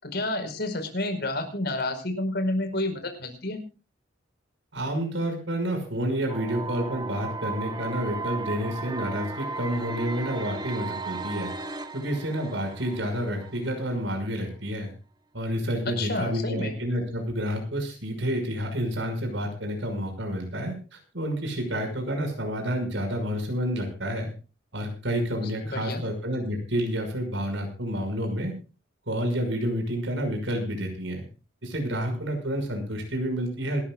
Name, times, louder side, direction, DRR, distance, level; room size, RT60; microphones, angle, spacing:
voice 1, 0.0-3.6 16.0-16.7 25.6-26.0, left 2 dB, 60° left, 6 dB, 4.9 m, -30 dB
voice 2, 4.7-11.5 11.9-14.9 15.3-24.3 24.7-28.5 29.1-31.2 31.6-33.9, equal, 80° right, 5 dB, 6.0 m, -29 dB
sound 1, 6.3-14.3, right 3 dB, 25° right, 1.2 m, -36 dB
27.0 x 13.5 x 2.4 m, 0.33 s
head